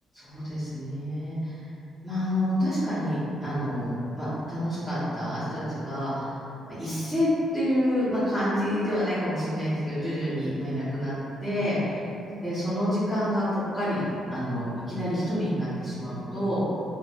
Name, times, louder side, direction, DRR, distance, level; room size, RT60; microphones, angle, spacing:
voice 1, 0.1-1.6 2.0-6.4 6.7-7.3 7.5-11.1 11.4-12.0 12.4-14.0 14.3-16.6, equal, 5° right, -17 dB, 1.3 m, -28 dB
3.9 x 2.1 x 2.5 m, 2.9 s
cardioid pair, 90°, 0 cm